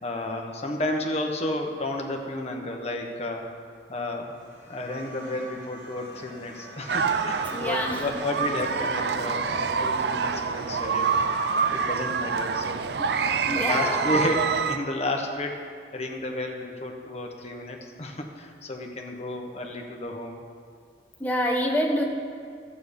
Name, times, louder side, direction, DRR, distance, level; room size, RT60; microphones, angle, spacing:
voice 1, 0.0-3.5 3.9-4.3 4.7-11.3 11.7-12.9 13.2-15.6 15.9-20.4, left 1 dB, 35° left, 2 dB, 1.1 m, -32 dB
sound 1, 4.2-11.9, right 2 dB, 85° right, 2.5 m, -44 dB
sound 2, 6.9-14.8, right 5 dB, 65° right, 0.5 m, -26 dB
voice 2, 7.5-8.1 13.0-13.1 13.4-14.1 21.2-22.0, equal, 10° left, 1 dB, 1.1 m, -26 dB
12.5 x 8.3 x 5.2 m, 2.2 s
head